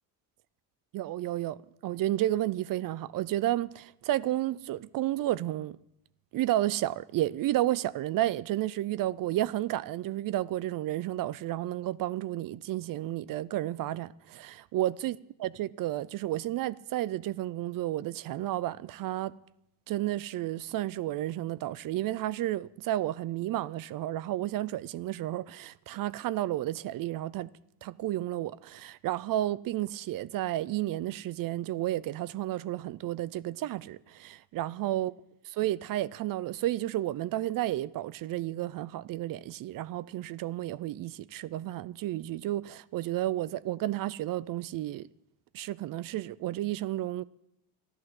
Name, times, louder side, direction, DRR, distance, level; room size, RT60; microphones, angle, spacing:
voice 1, 0.9-5.8 6.3-19.3 19.9-27.5 27.8-35.1 35.6-45.1 45.5-47.2, right 14 dB, 50° right, 0.5 m, -32 dB
14.0 x 11.0 x 7.6 m
cardioid pair, 160°, 43 cm